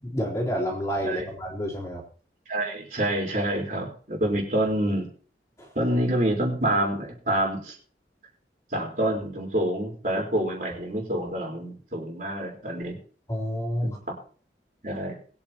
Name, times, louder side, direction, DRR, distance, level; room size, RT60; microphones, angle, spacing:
voice 1, 0.0-2.0 5.6-5.7 13.3-14.0, equal, 20° left, -3 dB, 3.4 m, -29 dB
voice 2, 2.5-5.1 5.7-7.7 8.7-13.0 13.8-13.9 14.8-15.1, right 1 dB, 45° right, -1 dB, 4.2 m, -27 dB
22.0 x 9.0 x 2.9 m, 0.43 s
head